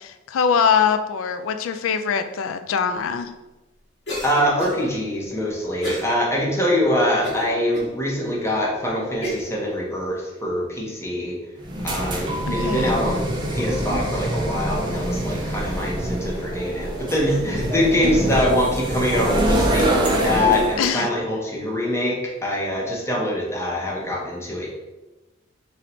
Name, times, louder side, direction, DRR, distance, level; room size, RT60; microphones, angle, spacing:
voice 1, 0.0-3.3 12.5-12.8 20.8-21.1, left 6 dB, 85° left, 9 dB, 0.3 m, -22 dB
Cough, 4.1-4.9 5.8-6.1 6.6-6.7 7.2-7.9 8.5-8.6 9.2-9.5, left 1 dB, 55° left, 1.3 m, -30 dB
voice 2, 4.2-11.4 11.8-24.7, left 1 dB, 15° left, -2 dB, 0.7 m, -24 dB
sound 1, 11.6-20.9, right 1 dB, 25° right, 0.5 m, -25 dB
3.2 x 2.7 x 4.2 m, 1.1 s
head